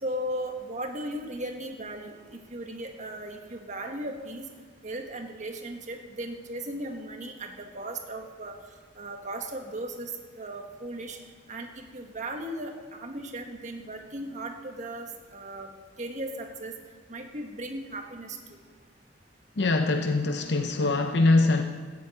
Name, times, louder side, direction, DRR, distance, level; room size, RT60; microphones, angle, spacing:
voice 1, 0.0-4.5 4.8-8.5 9.0-11.2 11.5-15.7 16.0-16.7 17.1-18.6, right 1 dB, 40° right, 4 dB, 1.6 m, -37 dB
voice 2, 19.6-21.6, left 2 dB, 60° left, 6 dB, 0.7 m, -23 dB
14.0 x 7.7 x 9.1 m, 1.5 s
head